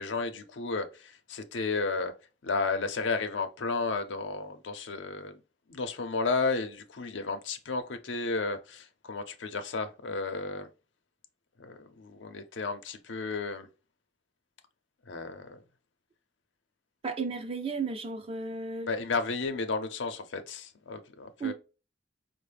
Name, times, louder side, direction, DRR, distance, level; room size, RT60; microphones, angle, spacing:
voice 1, 0.0-2.1 2.4-5.4 5.7-10.7 11.6-13.7 15.1-15.6 18.9-21.5, left 4 dB, 90° left, 0.6 m, -33 dB
voice 2, 17.0-18.9 21.4-21.5, right 4 dB, 30° right, 0.4 m, -34 dB
4.5 x 2.1 x 3.3 m
head